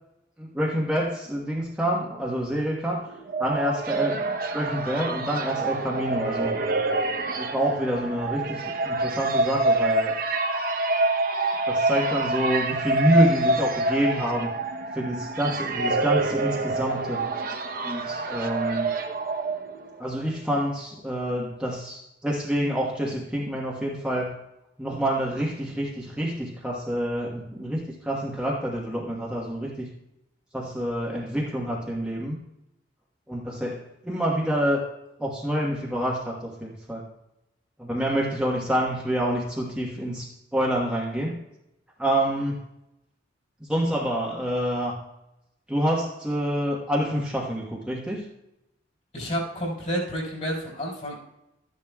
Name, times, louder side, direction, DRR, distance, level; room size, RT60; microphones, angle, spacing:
voice 1, 0.4-3.1 3.4-6.5 7.4-10.1 11.7-14.5 14.9-17.2 17.8-19.0 20.0-24.4 24.8-29.9 30.5-32.4 33.3-34.8 35.2-37.1 37.8-41.4 42.0-42.6 43.6-45.0 45.7-48.2, equal, 5° right, -4 dB, 1.2 m, -27 dB
sound 1, 3.0-20.0, right 2 dB, 50° right, 0.8 m, -27 dB
voice 2, 49.1-51.2, equal, 40° left, -4 dB, 4.2 m, -30 dB
13.5 x 10.5 x 2.3 m, 0.89 s
head